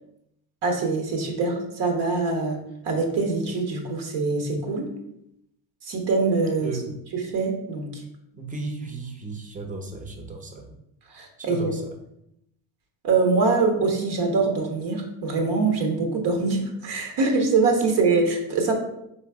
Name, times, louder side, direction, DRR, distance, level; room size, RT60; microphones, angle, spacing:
voice 1, 0.6-2.6 2.8-4.9 5.8-6.7 7.1-8.0 11.1-11.7 13.0-18.7, right 4 dB, 60° right, 2 dB, 1.3 m, -24 dB
voice 2, 6.6-7.0 8.3-10.7 11.4-11.8, right 3 dB, 15° right, 3 dB, 0.8 m, -34 dB
3.3 x 3.1 x 4.7 m, 0.80 s
supercardioid pair, 95°, 45 cm